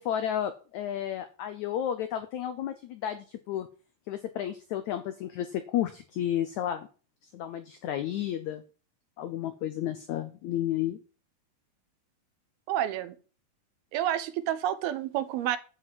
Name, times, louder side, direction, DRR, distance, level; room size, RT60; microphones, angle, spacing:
voice 1, 0.0-3.7 4.1-6.9 7.3-8.6 9.2-11.0, left 11 dB, 85° left, 1.6 m, -32 dB
voice 2, 12.7-13.1 13.9-15.6, right 11 dB, 85° right, 2.8 m, -29 dB
9.5 x 4.9 x 7.9 m
omnidirectional pair, 4.3 m